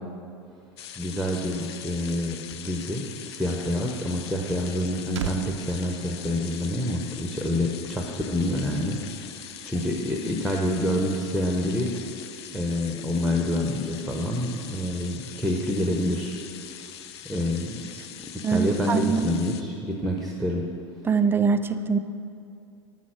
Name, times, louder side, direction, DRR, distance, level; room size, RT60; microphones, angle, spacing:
sound 1, 0.8-19.6, left 10 dB, 65° left, 0.5 m, -42 dB
voice 1, 1.0-9.0 9.3-11.9 12.5-16.6 17.2-17.8 18.5-20.6, left 1 dB, ahead, 1 dB, 0.8 m, -27 dB
sound 2, 4.6-7.1 7.3-7.6, right 8 dB, 80° right, 0.4 m, -38 dB
voice 2, 18.4-19.3 21.1-22.0, right 5 dB, 15° right, 11 dB, 0.4 m, -23 dB
7.4 x 6.2 x 6.1 m, 2.5 s
figure-of-eight pair, 80°, 15 cm